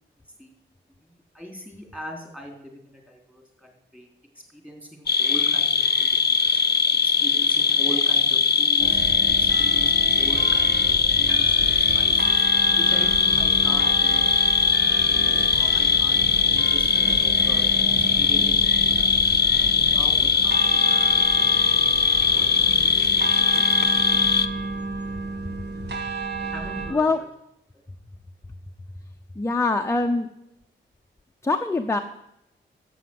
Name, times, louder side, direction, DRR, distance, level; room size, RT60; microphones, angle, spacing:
voice 1, 1.0-4.1 4.5-6.5 7.0-9.0 9.4-12.4 12.7-14.3 15.0-17.7 18.1-19.6 19.9-21.4 22.3-22.5 22.7-24.5 26.4-27.3, equal, 5° right, 2 dB, 3.5 m, -40 dB
sound 1, 5.1-24.5, left 5 dB, 55° left, 0.7 m, -20 dB
sound 2, 8.8-26.9, right 3 dB, 60° right, 1.8 m, -32 dB
sound 3, 11.6-23.0, right 1 dB, 75° right, 5.0 m, -47 dB
voice 2, 29.4-30.3 31.4-32.0, left 3 dB, 15° left, 5 dB, 0.8 m, -23 dB
11.5 x 7.9 x 7.8 m, 0.81 s
wide cardioid pair, 100°, 20 cm